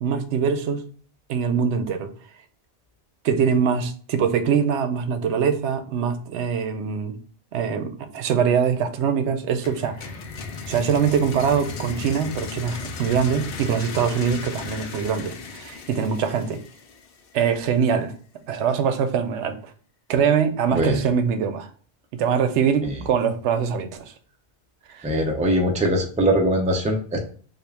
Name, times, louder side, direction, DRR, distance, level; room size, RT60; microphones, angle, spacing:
voice 1, 0.0-0.8 1.3-2.1 3.2-7.2 7.5-10.0 10.7-16.6 17.3-18.1 18.5-19.7 20.1-21.7 22.1-24.0 24.9-25.1, right 7 dB, 85° right, 9 dB, 0.9 m, -23 dB
sound 1, 9.6-17.4, left 4 dB, 65° left, 0.7 m, -36 dB
voice 2, 25.0-27.2, equal, 10° right, 2 dB, 0.4 m, -21 dB
3.7 x 2.4 x 3.3 m, 0.43 s
omnidirectional pair, 1.1 m